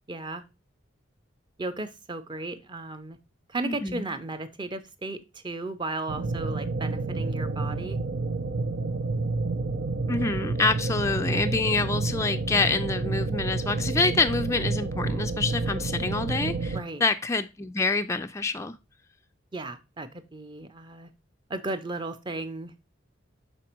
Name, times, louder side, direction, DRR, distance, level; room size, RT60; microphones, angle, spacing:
voice 1, 0.1-0.4 1.6-3.2 3.5-8.0 16.7-17.0 19.5-21.1 21.5-22.7, right 2 dB, 25° right, 9 dB, 0.6 m, -35 dB
voice 2, 3.6-4.1 10.1-18.8, left 3 dB, 15° left, 7 dB, 0.3 m, -27 dB
sound 1, 6.1-16.8, right 3 dB, 85° right, 0.7 m, -29 dB
6.2 x 4.2 x 4.4 m, 0.26 s
head